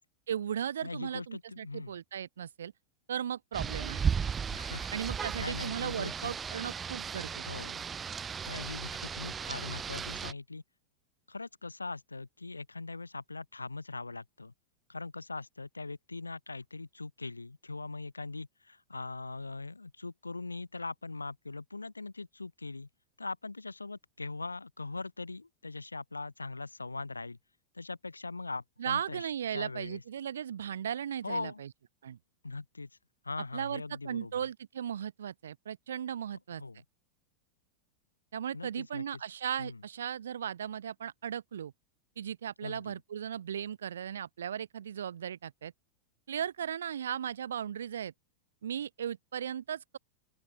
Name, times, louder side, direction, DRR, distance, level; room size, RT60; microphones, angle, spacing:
voice 1, 0.3-2.7 3.1-4.0 4.9-7.4 28.8-31.7 32.0-32.2 33.5-36.6 38.3-41.7 42.2-45.7 46.3-48.1 48.6-50.0, right 9 dB, 65° right, 1.4 m, -37 dB
voice 2, 0.8-1.9 4.5-4.9 5.4-6.3 7.5-7.8 8.5-10.6 11.3-14.5 14.9-22.9 23.2-27.4 27.7-30.0 31.2-31.6 32.4-32.9 33.2-34.5 36.6-36.8 38.5-39.0 39.6-39.8 42.6-43.0, left 3 dB, 80° left, 6.4 m, -41 dB
Rain, 3.5-10.3, right 6 dB, 20° right, 2.1 m, -35 dB
open air
figure-of-eight pair, 90°, 0 cm